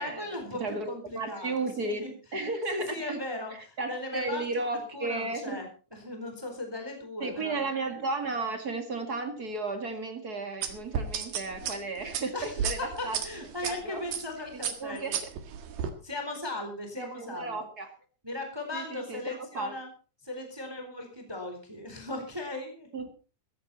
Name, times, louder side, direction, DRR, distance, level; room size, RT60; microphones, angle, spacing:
voice 1, 0.0-2.1 2.7-4.4 4.7-7.7 12.3-12.6 13.0-15.1 16.0-17.7 18.2-19.9 20.2-22.9, left 2 dB, 5° right, 4 dB, 3.6 m, -38 dB
voice 2, 0.6-3.2 3.8-5.6 7.2-13.2 13.6-14.0 14.8-15.2 17.0-17.9 18.7-19.7 22.9-23.1, right 3 dB, 35° right, 6 dB, 1.6 m, -34 dB
sound 1, 10.6-13.7 14.1-14.3 14.6-15.9, right 7 dB, 70° right, 3.5 m, -32 dB
15.5 x 14.5 x 4.2 m, 0.36 s
omnidirectional pair, 4.5 m